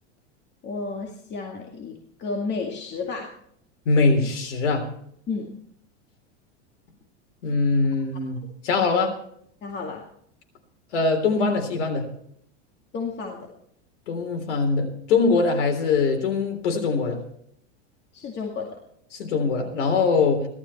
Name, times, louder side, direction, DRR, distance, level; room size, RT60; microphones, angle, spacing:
voice 1, 0.6-3.3 5.3-5.5 9.6-10.0 12.9-13.5 18.1-18.7, left 4 dB, 30° left, 0 dB, 2.2 m, -32 dB
voice 2, 3.9-4.9 7.4-9.1 10.9-12.1 14.1-17.2 19.1-20.5, left 4 dB, 85° left, 4 dB, 3.6 m, -22 dB
17.5 x 12.5 x 4.3 m, 0.69 s
supercardioid pair, 130°, 34 cm